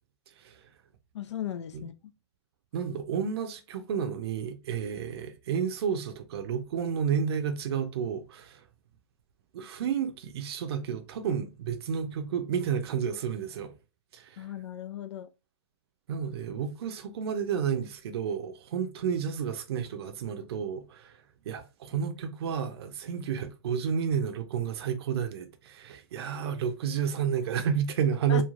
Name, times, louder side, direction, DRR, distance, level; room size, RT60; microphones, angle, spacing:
voice 1, 1.1-1.9 14.4-15.3 28.3-28.4, left 10 dB, 70° left, 0.4 m, -36 dB
voice 2, 2.7-8.6 9.5-13.7 14.1-14.5 16.1-21.2 21.5-28.4, right 7 dB, 60° right, 0.5 m, -31 dB
3.1 x 2.2 x 2.4 m
hypercardioid pair, 140°, 15 cm